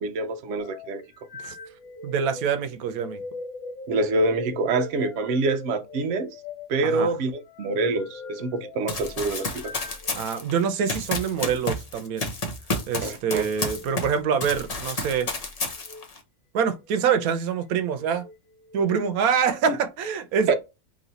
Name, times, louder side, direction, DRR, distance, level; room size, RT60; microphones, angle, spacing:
voice 1, 0.0-1.0 3.9-6.3 6.7-9.5 13.0-13.5 20.5-20.6, right 3 dB, 65° right, 0.9 m, -25 dB
sound 1, 0.6-10.5 11.3-11.6 13.6-13.9 14.7-15.2 15.7-16.1 16.8-17.3 17.8-18.9, left 2 dB, 85° left, 1.1 m, -42 dB
voice 2, 2.0-3.2 6.8-7.1 10.1-12.3 12.9-15.3 16.5-18.3 18.7-20.5, right 7 dB, 90° right, 1.1 m, -25 dB
Run, 8.9-14.1 14.4-16.2, left 2 dB, 35° left, 0.7 m, -31 dB
3.1 x 2.7 x 3.9 m
omnidirectional pair, 1.5 m